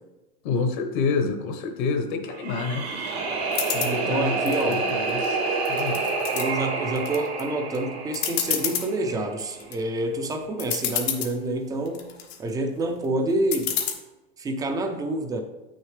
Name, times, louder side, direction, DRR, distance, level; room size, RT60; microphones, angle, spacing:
voice 1, 0.4-2.9 3.7-5.4 5.7-6.0, left 4 dB, 50° left, 6 dB, 1.1 m, -28 dB
sound 1, 2.3-9.4, right 4 dB, 85° right, 2.6 m, -28 dB
sound 2, 3.5-3.9 4.5-5.2 5.6-6.4 7.0-7.4 7.7-7.8 8.1-8.9 9.4-9.7 10.3-10.4 10.6-11.3 11.9-12.4 13.5-13.9, left 9 dB, 80° left, 1.3 m, -28 dB
voice 2, 3.8-4.8 6.3-12.1 12.4-13.8 14.4-15.4, right 2 dB, 10° right, 5 dB, 0.6 m, -28 dB
8.3 x 6.5 x 3.3 m, 1.1 s
supercardioid pair, 155°, 31 cm